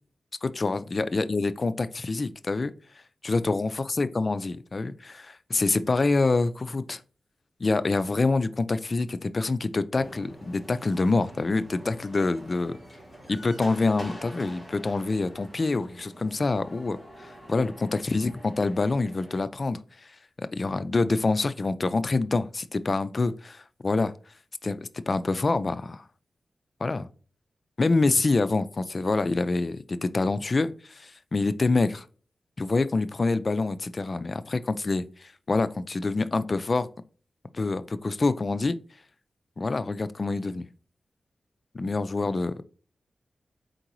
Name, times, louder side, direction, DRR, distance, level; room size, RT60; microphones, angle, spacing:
voice 1, 0.4-2.7 3.2-7.0 7.6-12.8 13.3-20.1 20.5-24.1 24.6-26.0 26.8-27.1 27.8-32.1 32.6-36.9 37.5-38.8 39.6-40.7 41.7-42.5, left 3 dB, 35° left, 13 dB, 0.3 m, -26 dB
sound 1, 9.9-19.4, equal, 10° right, 1.9 m, -46 dB
4.6 x 3.8 x 2.9 m, 0.40 s
wide cardioid pair, 135°, 0 cm